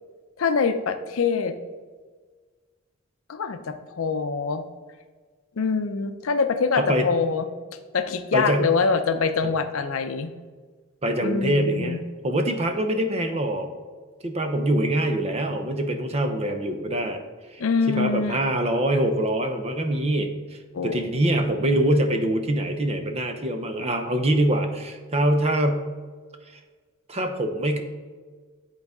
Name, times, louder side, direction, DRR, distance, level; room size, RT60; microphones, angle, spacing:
voice 1, 0.4-1.5 3.3-4.6 5.6-7.5 7.9-10.3 11.2-12.0 17.6-18.4 20.7-21.0, left 5 dB, 75° left, 8 dB, 0.5 m, -24 dB
voice 2, 6.8-7.1 8.3-8.7 9.4-9.5 11.0-12.0 12.2-13.7 14.2-17.2 17.5-17.6 17.9-25.9 27.1-27.8, right 1 dB, 30° right, 6 dB, 0.7 m, -24 dB
10.5 x 4.0 x 3.6 m, 1.5 s
head